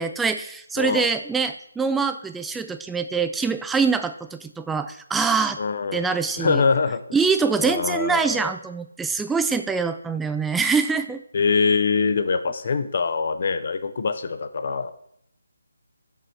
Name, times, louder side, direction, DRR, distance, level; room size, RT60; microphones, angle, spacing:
voice 1, 0.0-5.6 5.9-6.6 7.1-11.2, right 5 dB, 5° right, 9 dB, 0.3 m, -24 dB
voice 2, 0.8-1.1 5.6-6.1 6.4-7.2 7.6-8.5 11.3-14.9, left 5 dB, 45° left, 10 dB, 0.6 m, -23 dB
6.2 x 5.5 x 4.3 m, 0.71 s
figure-of-eight pair, 150°, 0 cm